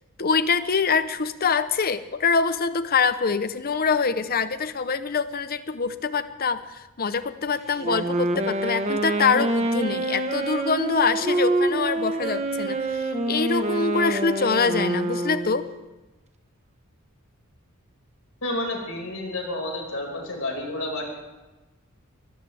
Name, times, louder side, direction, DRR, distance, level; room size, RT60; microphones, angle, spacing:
voice 1, 0.2-15.7, left 5 dB, 45° left, 12 dB, 0.8 m, -24 dB
Wind instrument woodwind instrument, 7.8-15.7, right 2 dB, 30° right, 1.2 m, -26 dB
voice 2, 18.4-21.1, left 1 dB, 70° left, 0 dB, 5.3 m, -30 dB
22.5 x 18.0 x 3.5 m, 1.1 s
head